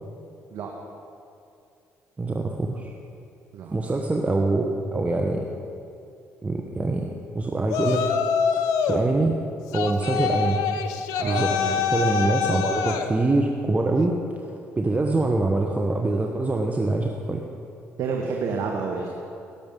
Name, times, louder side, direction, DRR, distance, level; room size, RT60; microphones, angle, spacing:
voice 1, 2.2-2.9 3.7-5.5 6.4-8.1 8.5-9.4 9.7-10.6 11.2-11.5 11.9-17.4, right 2 dB, 25° right, 2 dB, 1.1 m, -24 dB
Yell, 7.7-9.0 9.7-13.1, left 6 dB, 80° left, 0.7 m, -25 dB
voice 2, 11.2-11.8 18.0-19.1, right 5 dB, 70° right, 0 dB, 1.2 m, -29 dB
17.5 x 6.9 x 5.3 m, 2.5 s
supercardioid pair, 55°, 6 cm